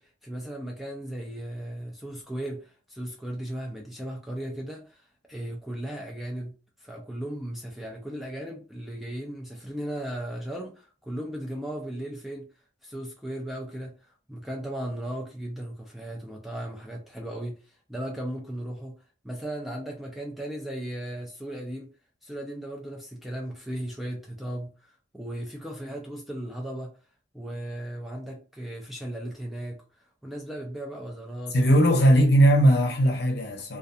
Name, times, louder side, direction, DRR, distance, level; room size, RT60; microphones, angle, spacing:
voice 1, 0.0-6.5 6.8-12.5 12.8-14.0 14.3-19.0 19.2-21.9 22.2-27.0 27.3-29.8 30.2-32.0, right 1 dB, ahead, 0.4 m, -36 dB
voice 2, 31.5-33.8, right 1 dB, 55° left, 0.7 m, -19 dB
2.4 x 2.3 x 2.6 m
head